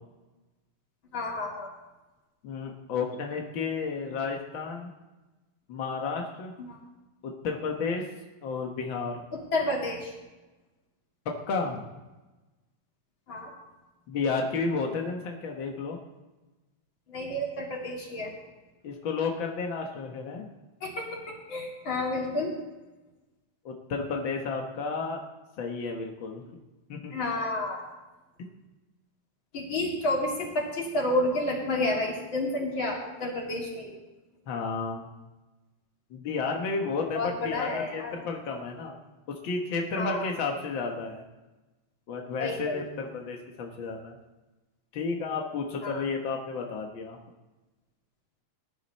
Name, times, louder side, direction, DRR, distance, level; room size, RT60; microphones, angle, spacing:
voice 1, 1.1-1.7 6.6-6.8 9.5-10.1 13.3-13.5 17.1-18.3 20.8-22.5 27.1-27.8 29.5-33.9 37.1-38.1 39.9-40.3 42.4-42.8 45.8-46.0, left 2 dB, 35° left, -2 dB, 3.2 m, -30 dB
voice 2, 2.4-4.9 5.7-6.5 7.2-8.1 8.4-9.2 11.2-11.8 14.1-16.0 18.8-20.5 23.6-25.2 25.6-26.6 26.9-27.1 34.5-35.1 36.1-39.0 39.3-41.2 42.1-44.2 44.9-47.2, left 4 dB, 70° left, 2 dB, 1.1 m, -32 dB
20.0 x 11.0 x 4.2 m, 1.1 s
omnidirectional pair, 4.1 m